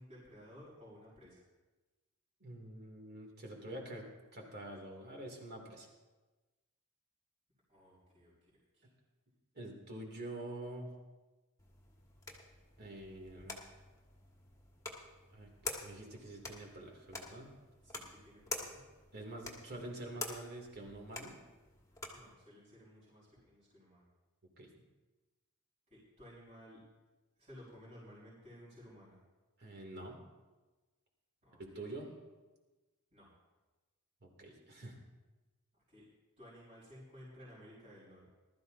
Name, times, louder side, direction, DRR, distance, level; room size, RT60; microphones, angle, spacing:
voice 1, 0.0-1.4 7.7-8.3 8.7-8.9 17.8-18.8 22.1-24.0 25.9-26.8 27.4-29.2 31.4-31.8 33.1-33.3 35.9-36.1 36.4-38.3, equal, 30° right, -9 dB, 4.7 m, -56 dB
voice 2, 2.4-5.9 9.5-10.9 12.8-13.6 15.3-15.5 15.8-17.5 19.1-21.3 24.6-24.7 29.6-30.2 31.6-32.1 34.2-35.0, right 1 dB, 50° right, 0 dB, 2.7 m, -47 dB
sound 1, 11.6-22.3, left 3 dB, 15° left, 1.7 m, -48 dB
20.5 x 13.0 x 2.7 m, 1.2 s
head